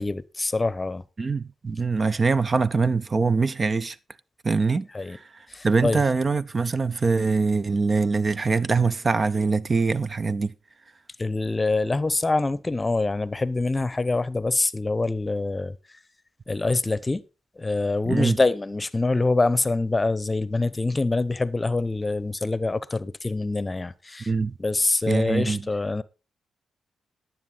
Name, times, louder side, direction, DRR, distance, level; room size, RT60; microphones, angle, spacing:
voice 1, 0.0-1.0 4.9-5.2 5.5-6.0 11.2-15.8 16.5-17.2 17.6-24.3 24.6-26.0, left 3 dB, 25° left, 0.8 m, -25 dB
voice 2, 1.2-4.0 4.4-10.5 18.1-18.4 24.3-24.5 25.1-25.6, right 4 dB, 40° right, 0.6 m, -23 dB
11.0 x 9.2 x 3.9 m
supercardioid pair, 55°, 0 cm